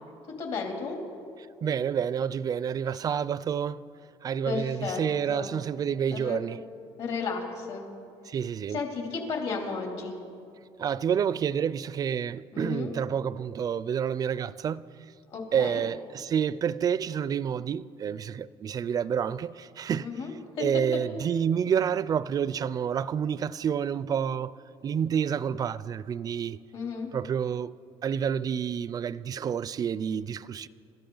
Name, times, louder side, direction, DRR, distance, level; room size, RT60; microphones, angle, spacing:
voice 1, 0.3-1.0 4.4-5.5 6.1-6.4 7.0-7.9 8.7-10.2 12.5-12.9 15.3-15.8 20.0-21.0 26.7-27.1, left 4 dB, 65° left, 3.1 m, -33 dB
voice 2, 1.6-3.8 4.2-6.6 8.3-8.8 10.8-14.8 15.5-20.1 20.6-24.5 24.8-26.6 27.1-27.7 28.0-30.7, right 8 dB, 35° right, 0.4 m, -29 dB
27.0 x 13.5 x 3.9 m
cardioid pair, 140°, 11 cm